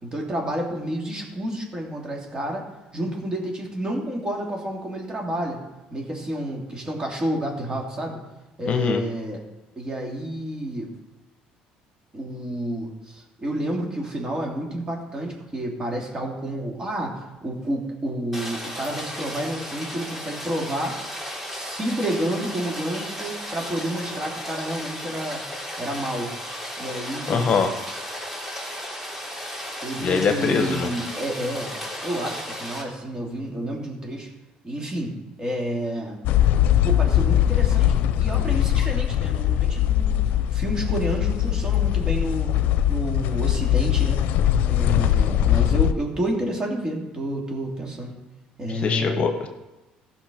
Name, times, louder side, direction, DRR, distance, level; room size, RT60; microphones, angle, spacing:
voice 1, 0.0-2.7 2.9-5.6 5.9-8.2 8.6-9.4 9.8-10.9 12.1-21.0 21.5-25.4 25.8-26.3 26.8-27.4 29.8-31.8 32.0-34.3 34.6-36.2 36.8-42.5 42.9-44.2 44.7-48.1 48.6-49.2, right 1 dB, 25° right, 0 dB, 2.6 m, -30 dB
voice 2, 8.7-9.0 27.3-27.7 30.0-30.9 48.8-49.5, left 5 dB, 45° left, 5 dB, 1.1 m, -22 dB
Rain, 18.3-32.8, equal, 10° right, 3.3 m, -35 dB
sound 1, 36.2-45.9, left 11 dB, 75° left, 0.6 m, -21 dB
15.0 x 6.0 x 5.1 m, 1.0 s
cardioid pair, 110°, 3 cm